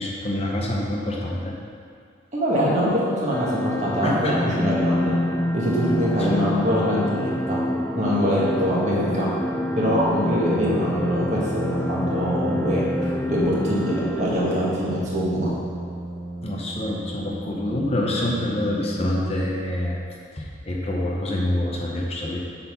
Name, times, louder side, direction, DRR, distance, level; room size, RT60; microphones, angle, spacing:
voice 1, 0.0-1.5 4.0-4.2 4.5-4.6 6.3-6.4 16.4-20.0 20.3-22.4, left 1 dB, 30° left, -2 dB, 0.8 m, -26 dB
voice 2, 2.3-5.2 5.5-7.6 8.0-9.3 9.8-12.9 13.3-15.5, equal, 35° right, -6 dB, 1.7 m, -23 dB
sound 1, 3.3-14.3, left 1 dB, 10° left, 0.3 m, -27 dB
Brass instrument, 10.5-20.0, right 2 dB, 60° right, 1.1 m, -35 dB
8.1 x 4.1 x 5.6 m, 2.2 s
head